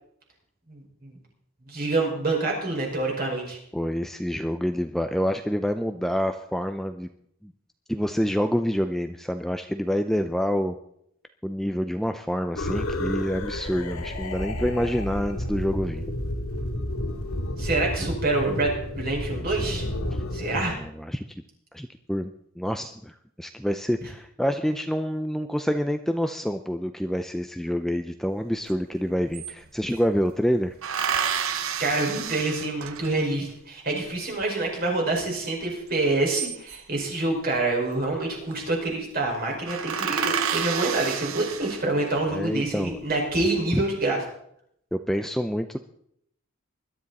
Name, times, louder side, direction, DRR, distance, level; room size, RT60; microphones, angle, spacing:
voice 1, 0.7-1.1 1.7-3.6 17.6-19.8 20.3-20.8 31.8-44.2, right 2 dB, 45° right, -1 dB, 5.4 m, -26 dB
voice 2, 3.7-7.1 7.4-7.5 7.9-10.8 11.4-16.0 20.5-21.2 21.7-30.7 42.3-43.0 43.7-43.8 44.9-45.8, equal, ahead, 7 dB, 0.5 m, -27 dB
sound 1, 12.5-20.7, left 1 dB, 75° left, 2.4 m, -31 dB
sound 2, 28.7-28.8 29.0-30.1 30.8-33.3 36.0-37.0 38.1-38.5 38.8-39.0 39.3-39.4 39.7-42.2 42.8-43.4, right 7 dB, 70° right, 1.0 m, -30 dB
21.0 x 12.5 x 4.2 m, 0.71 s
head